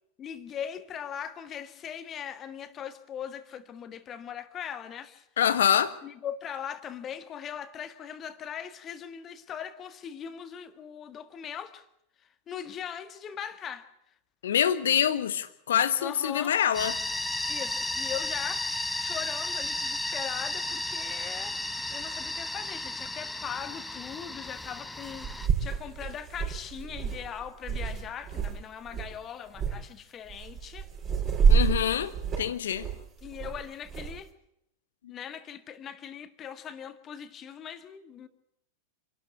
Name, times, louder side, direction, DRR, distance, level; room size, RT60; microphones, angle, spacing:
voice 1, 0.2-5.3 6.0-11.9 12.5-13.9 16.0-16.5 17.5-30.9 33.2-34.3 35.1-38.3, left 8 dB, 25° left, 1.7 m, -40 dB
voice 2, 5.4-5.9 14.4-17.0 31.5-32.9, left 9 dB, 60° left, 1.3 m, -25 dB
sound 1, 16.7-25.5, left 2 dB, 5° left, 0.9 m, -33 dB
sound 2, 22.7-22.8 24.6-24.7 25.0-28.6 28.9-29.2 29.5-29.8 30.3-34.2, right 6 dB, 30° right, 6.2 m, -28 dB
27.0 x 12.5 x 8.2 m
figure-of-eight pair, 90°, 0 cm